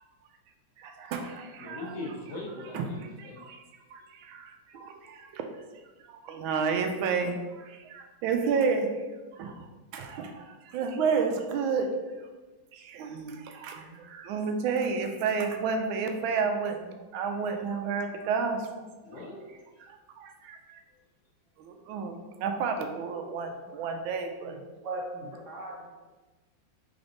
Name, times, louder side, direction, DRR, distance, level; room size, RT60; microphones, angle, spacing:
voice 1, 0.8-2.0 2.7-2.9 3.2-3.6 3.9-5.6 6.0-9.0 9.3-11.9 12.7-18.8 19.8-20.8 21.6-24.6, right 5 dB, 85° right, 5 dB, 1.4 m, -31 dB
voice 2, 1.6-3.5 4.0-4.1 19.0-19.5, left 2 dB, 60° left, -3 dB, 1.3 m, -40 dB
voice 3, 24.8-25.9, right 2 dB, 50° right, -5 dB, 1.1 m, -37 dB
3.9 x 3.4 x 3.8 m, 1.2 s
omnidirectional pair, 2.2 m